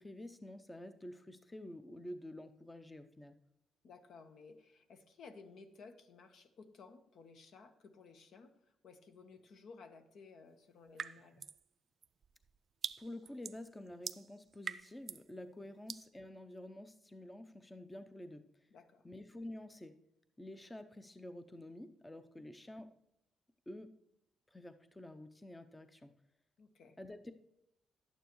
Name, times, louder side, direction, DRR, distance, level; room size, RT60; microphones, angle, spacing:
voice 1, 0.0-3.4 13.0-18.7 19.0-20.0 20.4-22.9 23.7-24.0 24.5-26.1 27.0-27.3, left 1 dB, 15° left, 9 dB, 0.6 m, -49 dB
voice 2, 3.8-11.4 15.6-15.7 18.7-19.1 22.4-22.5 26.6-27.0, left 4 dB, 70° left, 7 dB, 1.1 m, -57 dB
sound 1, 11.0-11.6 12.0-15.3 15.9-16.1, right 7 dB, 50° right, 0.4 m, -44 dB
11.5 x 9.1 x 3.1 m, 0.81 s
cardioid pair, 90°, 0 cm